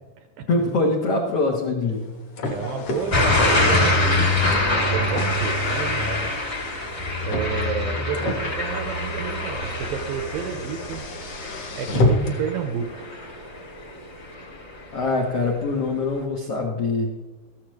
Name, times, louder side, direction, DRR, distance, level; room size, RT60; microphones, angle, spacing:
voice 1, 0.5-2.1 14.9-17.1, left 3 dB, 80° left, 0 dB, 1.3 m, -23 dB
Car, 1.9-12.5, left 1 dB, 55° left, 1.8 m, -30 dB
voice 2, 2.5-4.1 4.9-6.3 7.2-11.0 11.7-13.1, right 7 dB, 75° right, 5 dB, 2.2 m, -31 dB
sound 1, 3.1-13.9 14.4-14.8, left 2 dB, 35° left, 1.0 m, -24 dB
14.0 x 13.5 x 3.2 m, 1.3 s
omnidirectional pair, 4.8 m